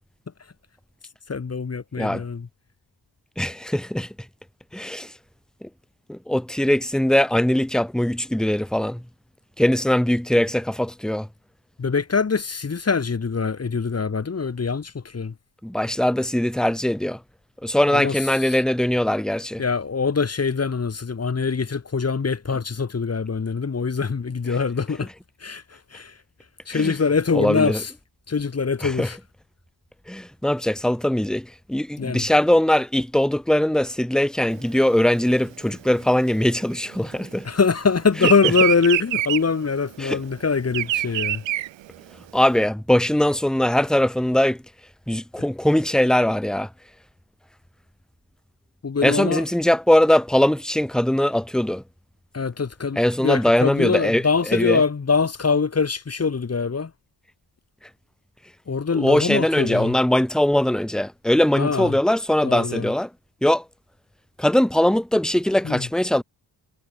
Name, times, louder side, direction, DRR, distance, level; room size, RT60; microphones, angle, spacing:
voice 1, 1.3-2.5 11.8-15.3 17.9-18.6 19.6-25.1 25.4-25.6 25.9-26.1 26.7-27.9 28.3-29.2 32.0-32.3 37.4-41.4 48.8-49.4 52.3-56.9 58.7-60.0 61.6-62.0 62.4-62.9 65.6-65.9, left 5 dB, 35° left, 2.4 m, -23 dB
voice 2, 3.4-4.1 4.7-5.1 5.6-5.7 6.1-9.0 9.6-11.3 15.6-17.2 17.6-19.6 26.7-26.9 27.3-27.8 28.8-29.1 30.1-37.5 40.0-40.2 42.3-44.6 45.1-46.7 49.0-51.8 53.0-54.8 58.9-63.1 63.4-63.6 64.4-66.2, left 1 dB, ahead, 1.4 m, -21 dB
Bird vocalization bird call bird song, 34.6-37.5 37.8-42.5, right 15 dB, 75° right, 0.9 m, -26 dB
cardioid pair, 75°, 45 cm